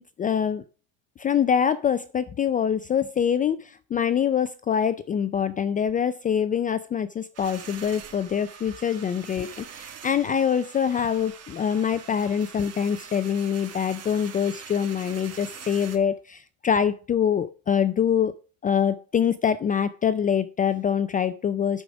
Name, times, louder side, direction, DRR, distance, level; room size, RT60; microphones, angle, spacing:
voice 1, 0.2-0.6 1.2-18.3 18.6-21.8, left 8 dB, 20° left, 13 dB, 0.4 m, -24 dB
sound 1, 7.3-16.0, right 7 dB, 40° right, 1.9 m, -44 dB
11.5 x 5.0 x 6.0 m, 0.36 s
supercardioid pair, 130°, 39 cm